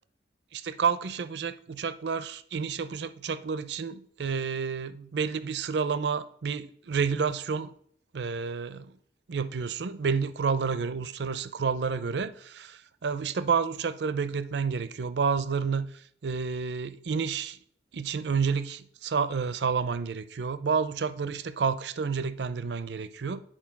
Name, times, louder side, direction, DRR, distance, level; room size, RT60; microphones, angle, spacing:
voice 1, 0.5-7.7 8.1-8.9 9.3-17.6 17.9-23.4, right 5 dB, 75° right, 0.5 m, -30 dB
10.0 x 4.4 x 5.8 m
head